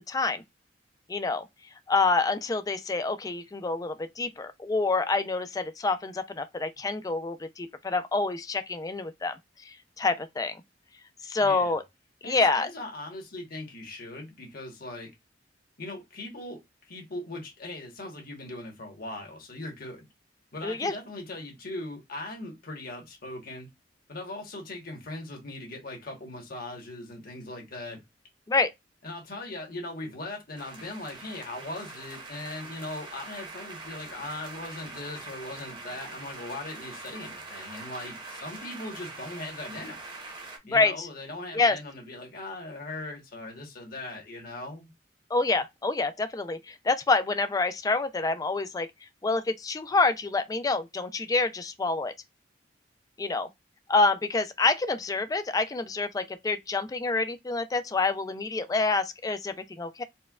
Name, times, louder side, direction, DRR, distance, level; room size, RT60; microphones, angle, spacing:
voice 1, 0.1-0.4 1.1-1.5 1.9-9.4 9.7-10.6 11.2-11.8 12.2-12.7 20.6-20.9 28.5-28.7 40.7-41.1 41.5-41.8 45.3-48.9 49.2-52.1 53.2-53.5 53.9-60.0, left 3 dB, 20° left, 0.3 m, -27 dB
voice 2, 11.4-11.7 12.2-15.1 15.8-20.0 20.5-23.7 24.1-28.0 29.0-40.0 40.7-44.9, left 2 dB, 55° left, 1.2 m, -39 dB
sound 1, 30.6-40.6, right 3 dB, 25° right, 0.8 m, -43 dB
4.2 x 2.2 x 2.3 m
head